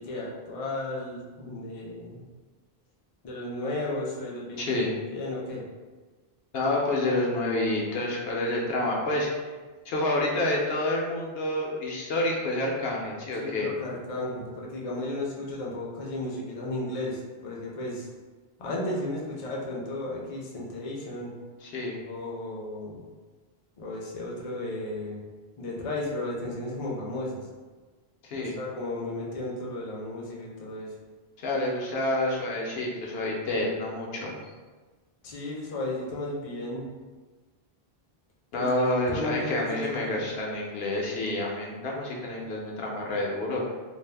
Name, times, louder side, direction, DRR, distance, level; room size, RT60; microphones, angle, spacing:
voice 1, 0.0-2.2 3.2-4.7 5.0-5.6 13.4-18.1 18.6-21.3 22.1-23.0 23.8-25.2 25.6-27.4 28.3-30.9 35.2-36.9 38.5-38.7 39.1-40.3, left 2 dB, 45° left, -3 dB, 0.5 m, -34 dB
voice 2, 4.6-4.9 6.5-9.3 9.9-13.7 21.6-22.0 28.2-28.6 31.4-34.3 38.5-43.6, left 1 dB, 75° left, -2 dB, 0.8 m, -28 dB
2.6 x 2.0 x 3.2 m, 1.3 s
omnidirectional pair, 1.1 m